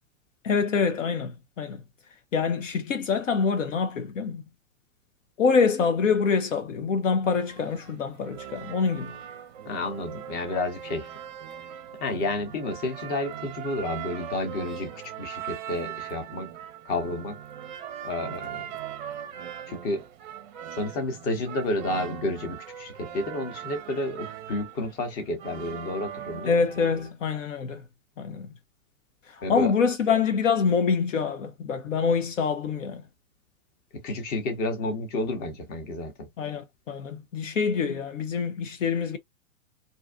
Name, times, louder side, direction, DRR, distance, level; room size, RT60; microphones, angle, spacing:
voice 1, 0.4-1.8 2.3-4.4 5.4-9.1 26.5-27.8 28.2-28.5 29.3-33.0 36.4-39.2, left 5 dB, 60° left, 0.6 m, -25 dB
sound 1, 7.2-27.1, right 10 dB, 35° right, 0.6 m, -40 dB
voice 2, 9.7-11.1 12.0-16.5 16.8-17.4 18.0-18.7 19.7-20.0 20.8-26.6 29.4-29.7 33.9-36.3, left 2 dB, 20° left, 0.8 m, -31 dB
2.6 x 2.3 x 2.3 m
figure-of-eight pair, 110°, 43 cm